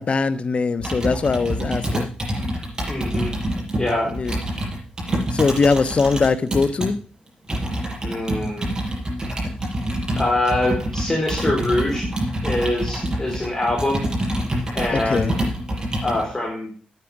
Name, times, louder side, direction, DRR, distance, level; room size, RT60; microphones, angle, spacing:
voice 1, 0.0-2.1 4.0-4.3 5.3-7.0 14.9-15.3, left 4 dB, 45° left, 1.1 m, -21 dB
Computer keyboard, 0.8-6.9 7.5-16.3, right 1 dB, 25° right, 6.6 m, -26 dB
voice 2, 2.9-3.3 3.8-4.1 8.0-8.7 10.2-12.1 12.4-14.1 14.7-15.3 16.0-16.7, left 1 dB, 20° left, 4.0 m, -24 dB
9.5 x 9.2 x 6.0 m
cardioid pair, 90°, 3 cm